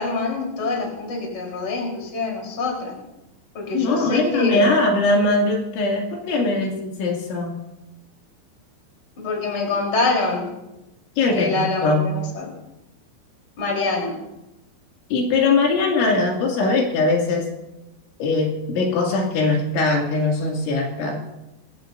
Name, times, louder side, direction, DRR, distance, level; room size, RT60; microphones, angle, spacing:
voice 1, 0.0-2.9 3.5-4.7 9.2-10.5 11.3-12.5 13.6-14.1, left 3 dB, 25° left, -1 dB, 4.0 m, -25 dB
voice 2, 3.7-7.6 11.2-12.1 15.1-17.5 18.2-21.2, left 3 dB, 80° left, -1 dB, 4.9 m, -21 dB
24.5 x 15.5 x 2.6 m, 0.96 s
omnidirectional pair, 5.4 m